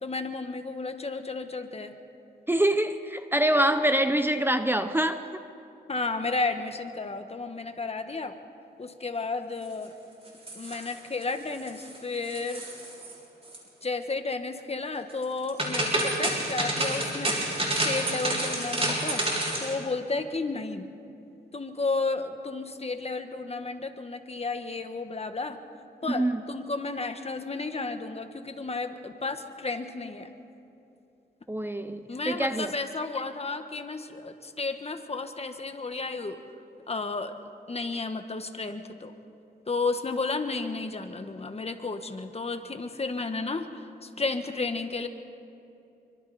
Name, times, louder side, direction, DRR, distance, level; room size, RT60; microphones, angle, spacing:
voice 1, 0.0-2.0 5.9-8.3 8.8-9.9 10.5-12.6 13.8-17.4 17.8-19.2 19.6-20.9 21.5-25.6 26.0-30.3 32.1-36.4 36.9-37.3 37.7-39.1 39.7-45.1, left 3 dB, 35° left, 7 dB, 1.5 m, -32 dB
voice 2, 2.5-5.2 26.1-26.4 31.5-32.7, right 1 dB, 10° right, 9 dB, 0.8 m, -25 dB
sound 1, 10.3-11.2 11.5-12.0 12.2-13.1 13.4-13.6 15.2-19.7, right 1 dB, 35° right, 5.5 m, -29 dB
26.5 x 24.5 x 4.3 m, 2.7 s
cardioid pair, 80°, 18 cm